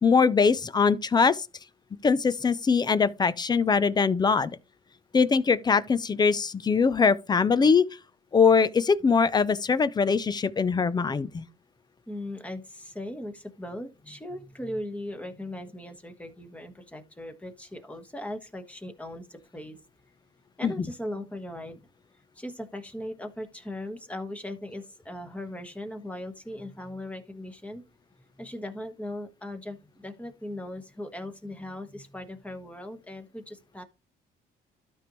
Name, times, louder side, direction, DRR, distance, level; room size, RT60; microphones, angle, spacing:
voice 1, 0.0-1.5 2.0-4.5 5.1-7.8 8.3-11.4 20.6-20.7, left 5 dB, 25° left, 0.5 m, -22 dB
voice 2, 12.1-19.8 20.6-21.9 22.3-27.8 28.4-33.8, left 1 dB, 10° left, 1.4 m, -38 dB
12.5 x 5.2 x 3.1 m
cardioid pair, 110°, 17 cm